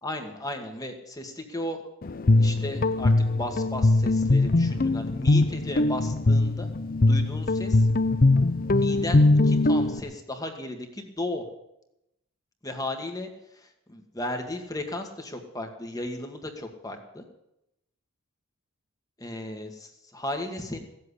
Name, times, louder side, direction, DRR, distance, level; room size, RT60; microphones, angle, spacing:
voice 1, 0.0-1.8 2.4-6.7 7.0-7.9 8.7-11.4 12.6-17.2 19.2-20.8, left 1 dB, 15° left, 4 dB, 1.7 m, -35 dB
Guitar, 2.0-10.0, left 2 dB, 40° left, 0.6 m, -21 dB
16.5 x 7.8 x 9.8 m, 0.86 s
head